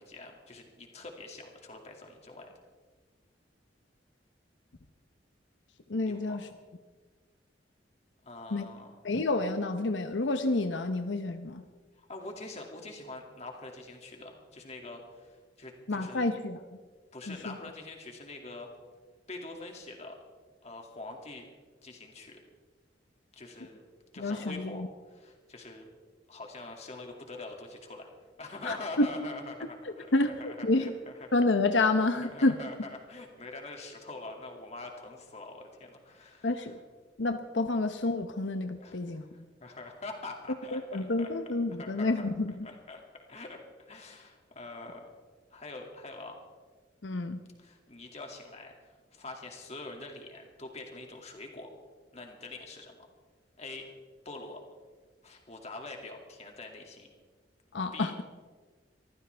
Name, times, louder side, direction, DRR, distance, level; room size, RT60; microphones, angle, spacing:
voice 1, 0.0-2.5 6.1-6.4 8.2-8.9 12.0-16.3 17.1-18.7 19.3-20.2 20.6-21.4 21.8-22.4 23.4-23.8 24.1-25.9 26.3-28.1 28.4-30.1 30.4-31.1 32.2-36.7 38.8-39.0 39.6-41.3 41.8-42.3 42.6-43.0 43.3-43.6 43.9-45.1 45.5-46.4 47.6-51.7 52.1-53.1 53.6-53.9 54.2-54.6 55.2-57.1 57.9-58.1, left 2 dB, 40° left, 2 dB, 2.4 m, -44 dB
voice 2, 5.9-6.5 8.5-8.7 9.0-11.6 15.9-16.6 17.3-17.6 24.2-24.9 28.6-29.1 29.8-30.9 31.3-32.5 36.4-36.8 37.2-39.3 40.7-42.7 47.0-47.4 57.7-58.2, left 2 dB, 90° left, 8 dB, 0.9 m, -29 dB
24.0 x 14.5 x 3.5 m, 1.4 s
head